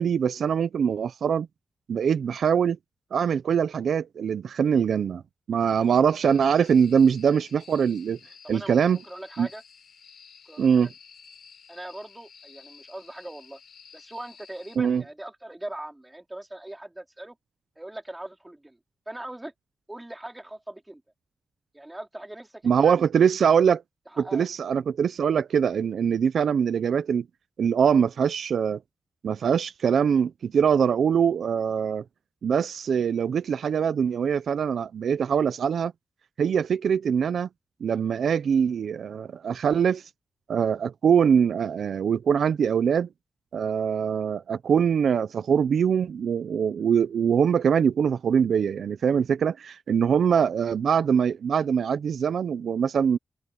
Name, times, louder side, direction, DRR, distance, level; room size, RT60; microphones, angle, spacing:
voice 1, 0.0-1.5 1.9-2.8 3.1-5.2 5.5-8.2 8.5-9.0 9.4-9.5 10.6-10.9 14.8-15.0 22.6-23.8 24.2-27.2 27.6-28.8 29.2-32.0 32.4-35.9 36.4-37.5 37.8-40.0 40.5-43.1 43.5-53.2, right 7 dB, 75° right, 0.6 m, -23 dB
sound 1, 6.1-14.8, left 7 dB, 70° left, 6.8 m, -52 dB
voice 2, 8.4-8.8 9.0-9.6 10.5-10.9 11.7-13.6 13.9-17.4 17.8-18.8 19.1-19.5 19.9-21.0 21.7-23.0 24.1-24.5 50.3-50.5, right 1 dB, 10° right, 3.9 m, -40 dB
wide cardioid pair, 155°, 0 cm